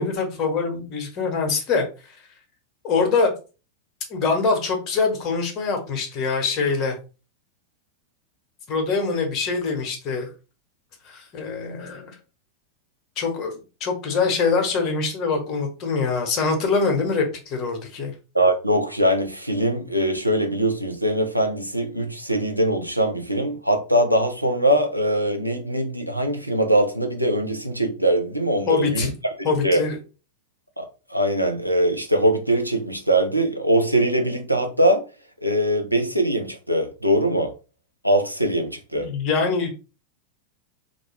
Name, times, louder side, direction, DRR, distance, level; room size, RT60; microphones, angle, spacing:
voice 1, 0.0-1.8 2.8-3.3 4.1-7.0 8.7-10.3 11.0-12.2 13.2-18.1 28.7-29.1 29.4-30.0 38.9-39.7, left 4 dB, 35° left, 0.9 m, -24 dB
voice 2, 18.3-29.1 29.6-29.8 30.8-35.0 35.4-37.5 38.0-39.1, right 1 dB, 90° right, 0.5 m, -22 dB
2.3 x 2.2 x 3.1 m
figure-of-eight pair, 90°, 0 cm